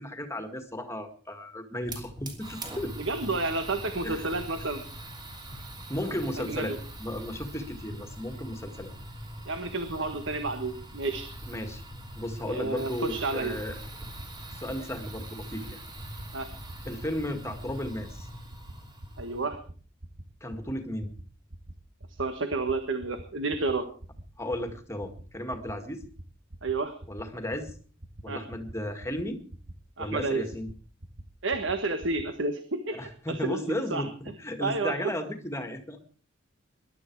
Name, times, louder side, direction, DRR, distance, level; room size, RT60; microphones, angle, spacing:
voice 1, 0.0-2.9 4.0-4.3 5.9-8.9 11.5-11.8 12.2-13.8 14.5-15.8 16.9-18.3 20.4-21.1 24.4-26.0 27.1-27.7 28.2-29.4 30.0-30.7 33.0-36.0, left 1 dB, 15° left, 7 dB, 2.0 m, -34 dB
Fire, 1.8-19.5, right 1 dB, 20° right, 3.1 m, -42 dB
voice 2, 3.0-4.8 6.4-6.8 9.5-11.3 12.4-13.6 16.3-16.5 19.2-19.6 22.2-23.8 26.6-26.9 28.3-28.4 30.0-30.5 31.4-33.0 33.4-34.0 34.6-34.9, right 3 dB, 65° right, 7 dB, 1.5 m, -30 dB
sound 1, 13.2-13.3 13.5-13.7 14.0-14.2 14.5-14.7 15.0-15.2 15.5-15.7 16.0-16.2 16.5-16.7 17.0-17.2 17.5-17.7 18.0-18.2 18.5-18.7 19.0-19.2 19.5-19.7 20.0-20.2 20.5-20.7 21.0-21.2 21.5-21.7 22.0-22.2 22.5-22.7 23.0-23.2 23.5-23.7 24.0-24.2 24.5-24.7 25.0-25.2 25.5-25.7 26.0-26.2 26.5-26.7 27.0-27.2 27.5-27.7 28.0-28.2 28.5-28.7 29.0-29.2 29.5-29.7 30.0-30.2 30.5-30.7 31.0-31.2 31.5-31.7 32.0-32.2, right 1 dB, 90° right, 2.1 m, -43 dB
21.5 x 12.0 x 4.7 m, 0.42 s
head